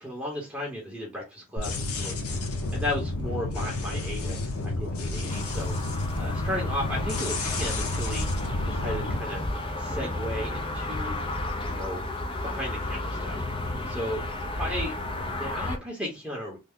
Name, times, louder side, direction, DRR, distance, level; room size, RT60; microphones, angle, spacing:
voice 1, 0.0-2.2 2.7-4.4 4.6-8.3 8.6-9.4 9.8-11.2 11.6-12.0 12.4-13.4 13.7-14.2 14.5-16.6, left 1 dB, 5° right, 0.9 m, -35 dB
sound 1, 1.6-9.2, left 2 dB, 80° left, 0.8 m, -31 dB
sound 2, 5.3-15.8, left 2 dB, 25° left, 0.5 m, -32 dB
3.2 x 2.2 x 3.5 m
head